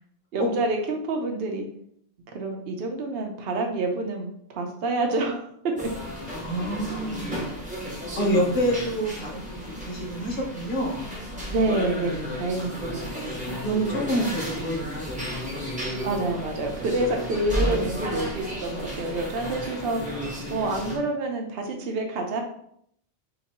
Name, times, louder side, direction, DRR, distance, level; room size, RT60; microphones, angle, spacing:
voice 1, 0.3-1.7 2.3-5.4 5.8-5.9 11.5-13.4 16.0-20.2 20.5-22.4, right 2 dB, 60° right, 2 dB, 0.9 m, -28 dB
sound 1, 5.8-21.0, equal, 10° right, 0.7 m, -33 dB
voice 2, 6.3-7.5 8.1-11.0 13.4-15.3 15.5-15.9, equal, 45° left, -2 dB, 1.1 m, -28 dB
2.9 x 2.7 x 4.1 m, 0.68 s
omnidirectional pair, 1.3 m